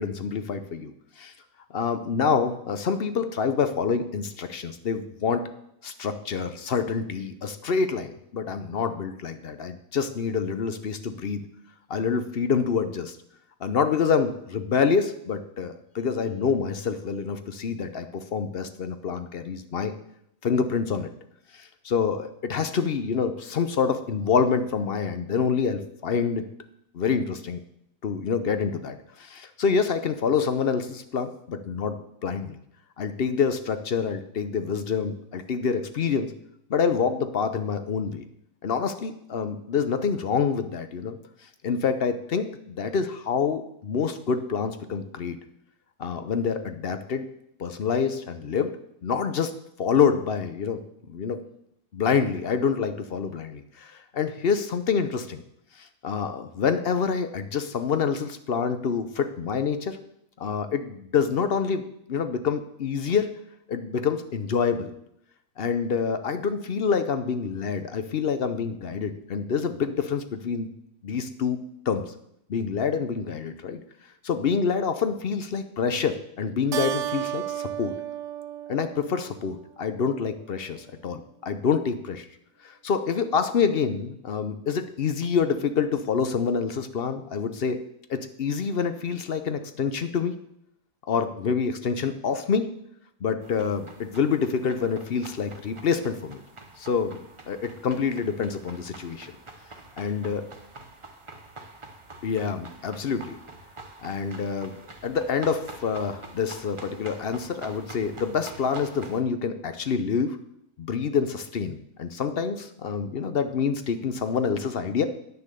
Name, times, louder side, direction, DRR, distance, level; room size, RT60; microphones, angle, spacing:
voice 1, 0.0-1.3 1.7-5.4 5.8-11.4 11.9-13.2 13.6-19.9 20.4-21.1 21.5-26.5 26.9-27.6 28.0-32.6 33.0-36.3 36.7-38.2 38.6-41.2 41.6-45.4 46.0-47.3 47.6-48.7 49.0-49.5 49.8-50.8 51.1-51.4 51.9-55.4 55.8-60.0 60.4-63.3 63.7-64.9 65.6-70.7 71.0-72.0 72.5-73.8 74.2-77.9 78.7-82.3 82.6-87.8 88.1-90.3 91.1-92.7 93.2-96.4 96.8-97.2 97.5-99.3 100.0-100.4 102.2-103.4 104.0-104.7 105.0-110.4 110.8-115.0, left 6 dB, 50° left, 9 dB, 0.7 m, -27 dB
Keyboard (musical), 76.7-79.6, right 11 dB, 65° right, 0.8 m, -32 dB
sound 1, 93.4-109.2, right 2 dB, 25° right, 0.8 m, -46 dB
9.7 x 6.8 x 6.7 m, 0.75 s
omnidirectional pair, 1.6 m